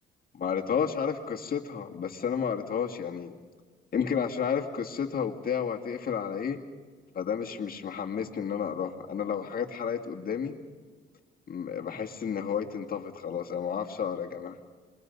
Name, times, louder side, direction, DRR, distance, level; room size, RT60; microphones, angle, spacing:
voice 1, 0.3-3.3 3.9-6.6 7.1-10.5 11.5-14.6, left 7 dB, 50° left, 2 dB, 2.1 m, -31 dB
30.0 x 22.0 x 5.4 m, 1.4 s
cardioid pair, 90°, 20 cm